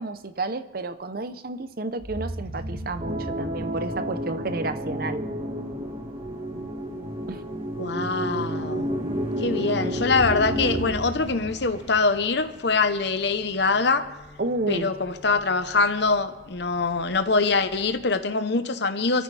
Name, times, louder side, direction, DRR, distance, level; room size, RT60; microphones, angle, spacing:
voice 1, 0.0-5.3 7.3-7.4 14.4-14.9, right 2 dB, 50° right, 11 dB, 0.7 m, -31 dB
sound 1, 2.0-5.0 9.9-13.2, right 1 dB, 80° right, 4.1 m, -37 dB
sound 2, 3.0-10.9, equal, 30° right, 1.4 m, -30 dB
sound 3, 3.2-18.2, left 1 dB, 15° right, 3.6 m, -50 dB
voice 2, 7.8-8.9 9.4-14.1 14.7-19.2, left 4 dB, 60° left, 9 dB, 0.9 m, -24 dB
24.5 x 13.5 x 3.4 m, 1.1 s
head